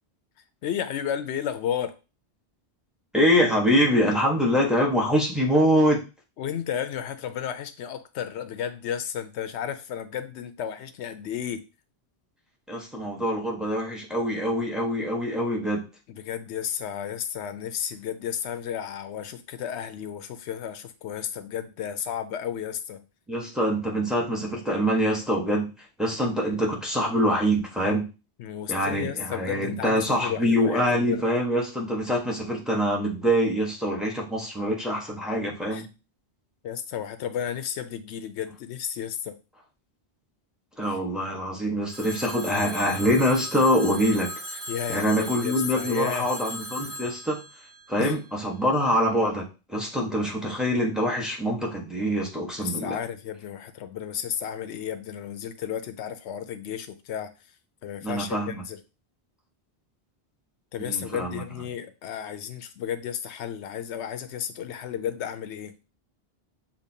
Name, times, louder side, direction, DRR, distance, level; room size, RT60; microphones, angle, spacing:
voice 1, 0.6-2.0 6.4-11.6 16.1-23.0 28.4-31.3 35.7-35.9 36.6-39.4 40.9-41.0 44.7-46.3 48.0-48.2 52.6-57.3 57.8-58.8 60.7-65.7, left 9 dB, 90° left, 10 dB, 0.9 m, -33 dB
voice 2, 3.1-6.0 12.7-15.8 23.3-25.7 26.0-28.1 28.7-35.9 40.8-44.3 44.9-47.4 47.9-53.0 58.0-58.6 60.8-61.4, equal, ahead, -1 dB, 1.1 m, -24 dB
Telephone, 41.9-48.7, equal, 50° right, 1.2 m, -38 dB
6.5 x 2.9 x 2.8 m, 0.30 s
omnidirectional pair, 1.1 m